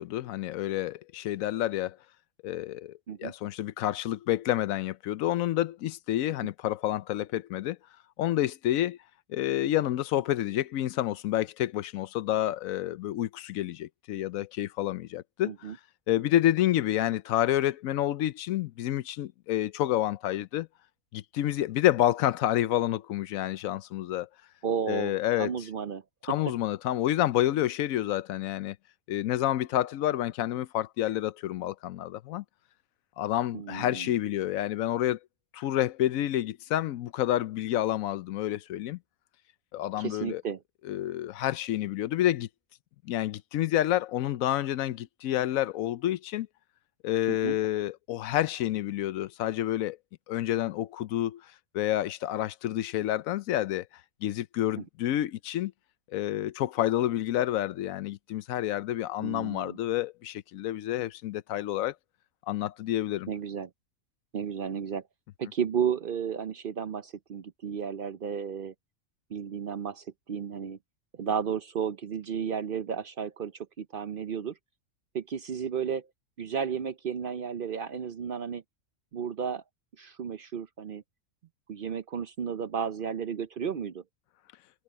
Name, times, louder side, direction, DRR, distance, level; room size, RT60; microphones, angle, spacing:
voice 1, 0.0-2.0 2.4-7.8 8.2-9.0 9.3-15.5 16.1-20.7 21.1-24.3 24.9-25.5 26.2-28.8 29.1-32.4 33.2-35.2 35.5-39.0 39.7-40.4 40.8-42.5 43.0-46.5 47.0-50.0 50.3-51.4 51.7-53.9 54.2-55.7 56.1-61.9 62.5-63.3, left 13 dB, 85° left, 1.0 m, -29 dB
voice 2, 24.6-26.0 33.5-34.1 40.0-40.6 47.3-47.6 54.8-54.9 59.2-59.8 63.3-63.7 64.3-65.0 65.4-68.7 69.3-70.8 71.2-74.6 75.1-76.1 76.4-78.6 79.1-79.6 80.0-81.0 81.7-84.0, right 7 dB, 55° right, 0.7 m, -33 dB
omnidirectional pair, 1.4 m